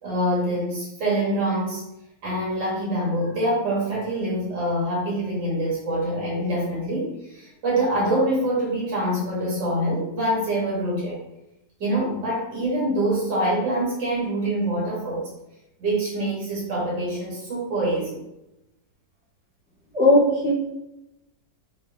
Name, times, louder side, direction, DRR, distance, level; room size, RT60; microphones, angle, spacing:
voice 1, 0.0-1.8 2.2-11.2 11.8-15.3 15.8-18.2, right 1 dB, 75° right, -5 dB, 2.1 m, -25 dB
voice 2, 19.9-20.5, left 1 dB, 15° left, -9 dB, 1.4 m, -17 dB
3.7 x 2.8 x 3.3 m, 0.89 s
omnidirectional pair, 2.0 m